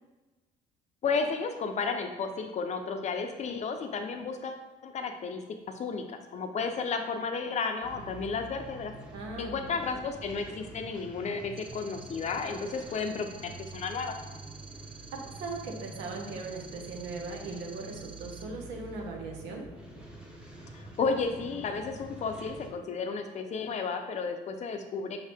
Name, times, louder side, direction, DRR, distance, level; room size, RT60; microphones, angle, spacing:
voice 1, 1.0-5.4 5.7-8.9 9.4-14.2 20.7-25.3, left 4 dB, 40° left, 5 dB, 0.6 m, -33 dB
sound 1, 7.8-22.7, right 1 dB, 5° right, 0.8 m, -47 dB
voice 2, 9.1-9.9 15.3-19.7, right 3 dB, 90° right, 1 dB, 0.9 m, -39 dB
sound 2, 11.6-18.4, right 5 dB, 30° right, 0.3 m, -51 dB
5.6 x 2.8 x 3.4 m, 1.2 s
cardioid pair, 110°, 17 cm